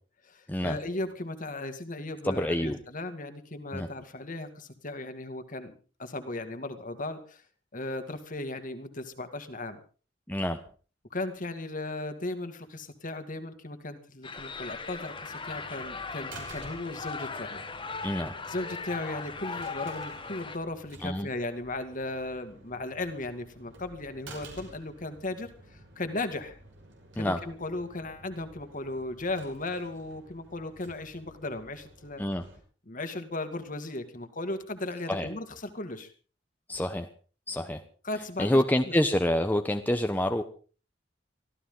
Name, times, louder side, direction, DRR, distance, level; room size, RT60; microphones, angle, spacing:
voice 1, 0.2-5.7 6.0-7.4 7.7-9.8 11.1-17.6 18.5-26.6 27.1-32.2 32.9-36.1 38.0-38.6, left 2 dB, 45° left, 8 dB, 2.3 m, -36 dB
voice 2, 2.2-2.8 3.7-3.9 10.3-10.6 18.0-18.3 21.0-21.3 27.2-27.4 32.2-32.4 35.1-35.3 36.7-37.1 37.5-37.8 38.4-40.4, left 1 dB, 10° left, 6 dB, 1.0 m, -27 dB
sound 1, 14.2-20.6, left 4 dB, 30° left, 1.9 m, -38 dB
sound 2, 15.0-32.6, right 2 dB, 70° right, 5.9 m, -52 dB
24.5 x 14.5 x 3.9 m, 0.39 s
head